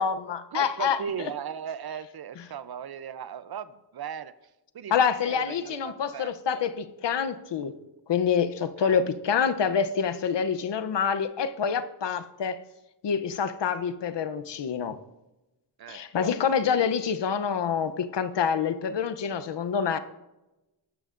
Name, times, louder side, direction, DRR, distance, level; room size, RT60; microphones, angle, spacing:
voice 1, 0.0-1.0 4.9-7.8 8.1-12.6 13.0-15.0 15.9-20.0, left 7 dB, 80° left, 11 dB, 0.7 m, -26 dB
voice 2, 0.5-4.3 4.7-5.0 5.2-6.6 8.8-9.0 15.8-16.0, right 8 dB, 60° right, 14 dB, 0.6 m, -37 dB
12.0 x 12.0 x 2.5 m, 0.99 s
wide cardioid pair, 130°, 43 cm